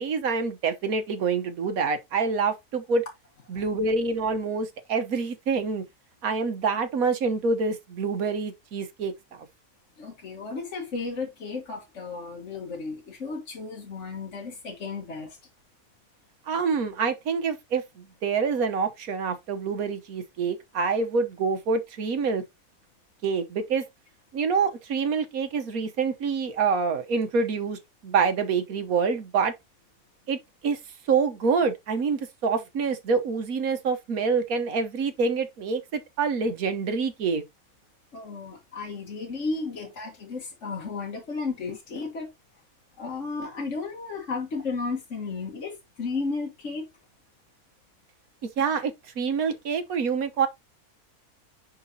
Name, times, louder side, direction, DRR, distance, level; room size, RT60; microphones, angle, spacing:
voice 1, 0.0-3.0 3.5-5.8 6.2-9.1 16.5-22.4 23.2-23.8 24.3-29.5 30.3-30.4 30.6-30.8 31.1-37.4 48.4-50.5, right 5 dB, 70° right, 1.4 m, -26 dB
voice 2, 10.0-15.4 38.1-42.3 43.0-46.9, left 4 dB, 55° left, 1.6 m, -34 dB
10.0 x 4.0 x 2.8 m
omnidirectional pair, 1.6 m